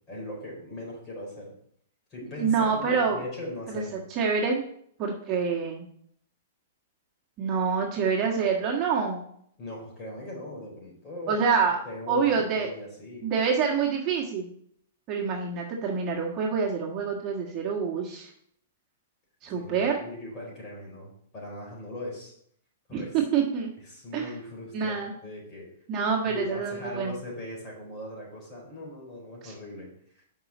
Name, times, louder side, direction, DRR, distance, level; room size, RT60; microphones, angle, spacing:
voice 1, 0.1-1.5 2.1-4.0 9.6-11.4 11.8-13.2 19.5-22.3 22.9-23.1 23.9-25.7 26.3-29.9, left 1 dB, 25° left, -2 dB, 4.3 m, -39 dB
voice 2, 2.4-3.2 3.7-3.8 4.1-4.6 5.0-5.8 7.4-9.3 11.3-11.8 12.1-12.7 13.2-14.5 15.1-18.3 19.4-20.0 22.9-23.7 24.1-24.3 24.7-25.1 25.9-27.2 29.4-29.5, right 6 dB, 30° right, -2 dB, 1.5 m, -26 dB
6.0 x 5.6 x 7.1 m, 0.66 s
hypercardioid pair, 150°, 0 cm